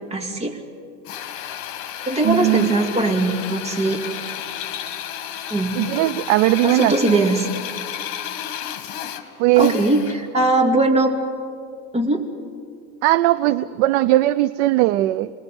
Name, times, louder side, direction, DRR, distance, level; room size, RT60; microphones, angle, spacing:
voice 1, 0.1-0.6 2.1-4.0 5.5-5.8 6.6-7.5 9.6-11.1 11.9-12.3, right 2 dB, 20° right, 1 dB, 2.4 m, -20 dB
Drill, 1.1-10.3, left 10 dB, 60° left, 1.9 m, -32 dB
voice 2, 2.2-2.8 5.8-7.3 9.4-9.8 13.0-15.3, right 16 dB, 70° right, 13 dB, 0.6 m, -18 dB
29.0 x 20.5 x 5.3 m, 2.3 s
supercardioid pair, 150°, 36 cm